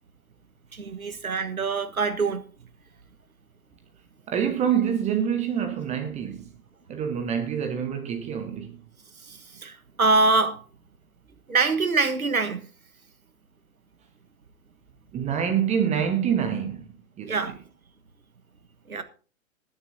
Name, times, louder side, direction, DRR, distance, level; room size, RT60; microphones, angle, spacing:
voice 1, 0.7-2.4 9.2-10.6 11.5-12.7 17.3-17.6 18.9-19.0, right 3 dB, 80° right, 1.4 m, -24 dB
voice 2, 4.3-6.5 6.9-8.8 15.1-16.9 17.2-17.3, right 8 dB, 15° right, 1.1 m, -26 dB
20.5 x 9.9 x 2.7 m
figure-of-eight pair, 115°, 42 cm